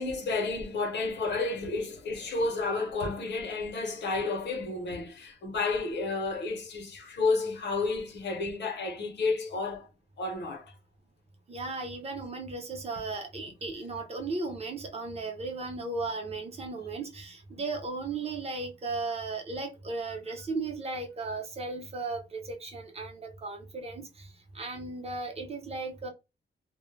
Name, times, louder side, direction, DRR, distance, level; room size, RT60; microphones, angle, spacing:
voice 1, 0.0-9.9 10.2-10.8 12.9-13.0, left 3 dB, 65° left, 0.7 m, -31 dB
voice 2, 11.5-24.3 24.5-26.1, right 3 dB, 30° right, 0.7 m, -36 dB
2.1 x 2.0 x 3.1 m
wide cardioid pair, 135°, 20 cm